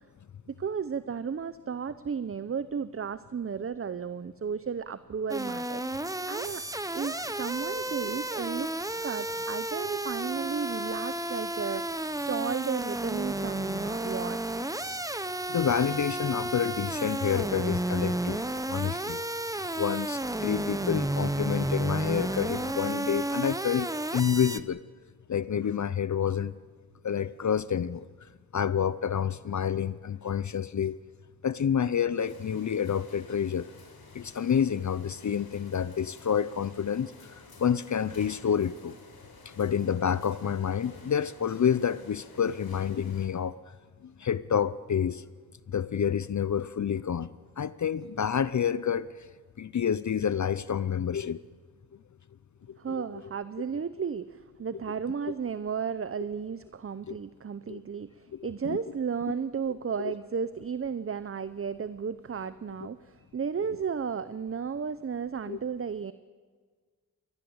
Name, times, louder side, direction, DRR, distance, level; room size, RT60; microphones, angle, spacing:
voice 1, 0.5-6.6 6.9-14.6 52.8-66.1, right 6 dB, 40° right, 14 dB, 0.7 m, -34 dB
sound 1, 5.3-24.6, right 1 dB, 10° right, 0.9 m, -32 dB
voice 2, 15.5-18.4 18.7-19.2 19.8-24.8 25.3-26.5 27.0-28.0 28.5-31.0 31.4-33.7 34.1-39.0 39.5-43.6 44.0-45.2 45.7-47.3 47.6-49.1 49.6-51.4 52.7-53.0 57.1-57.2 57.7-57.8 58.3-58.8 60.0-60.1 65.5-65.6, left 8 dB, 55° left, 17 dB, 0.6 m, -28 dB
sound 2, 32.2-43.3, left 3 dB, 80° left, 4.6 m, -52 dB
22.5 x 19.0 x 7.9 m, 1.6 s
wide cardioid pair, 70°, 36 cm